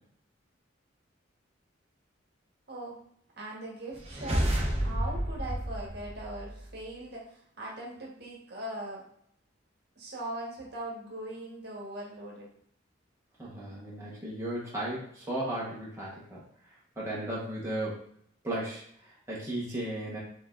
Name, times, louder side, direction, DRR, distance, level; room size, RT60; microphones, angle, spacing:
voice 1, 2.7-3.0 3.4-4.5 4.8-9.0 10.0-12.5, right 1 dB, 55° right, -3 dB, 1.4 m, -40 dB
sound 1, 3.9-6.7, equal, 30° right, 0.9 m, -31 dB
voice 2, 13.4-18.0 18.4-20.2, right 1 dB, 15° right, -7 dB, 1.2 m, -36 dB
5.1 x 3.6 x 2.6 m, 0.65 s
head